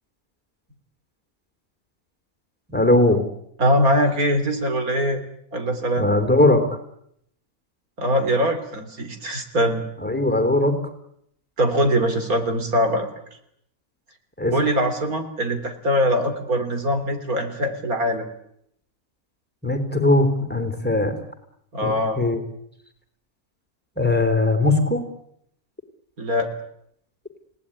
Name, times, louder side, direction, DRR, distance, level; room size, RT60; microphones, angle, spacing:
voice 1, 2.7-3.2 6.0-6.6 10.0-10.8 14.4-14.5 19.6-21.1 21.8-22.4 24.0-25.0, left 2 dB, 5° left, 8 dB, 3.4 m, -19 dB
voice 2, 3.6-5.2 5.5-6.1 8.0-9.8 11.6-13.1 14.5-18.3 21.7-22.2 26.2-26.5, equal, 80° right, 7 dB, 3.8 m, -22 dB
29.5 x 18.5 x 9.9 m, 0.75 s
omnidirectional pair, 1.5 m